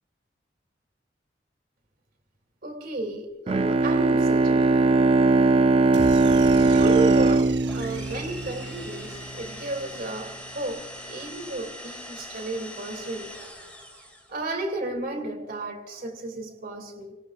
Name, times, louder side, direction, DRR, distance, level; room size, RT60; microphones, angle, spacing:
voice 1, 2.6-4.9 6.1-13.3 14.3-17.1, right 2 dB, 55° right, 2.6 m, -33 dB
Bowed string instrument, 3.5-9.0, right 3 dB, 35° right, 0.4 m, -20 dB
sound 1, 5.9-10.3, right 4 dB, 75° right, 0.8 m, -39 dB
sound 2, 7.7-14.4, left 1 dB, 10° left, 2.8 m, -42 dB
28.5 x 19.0 x 2.5 m
head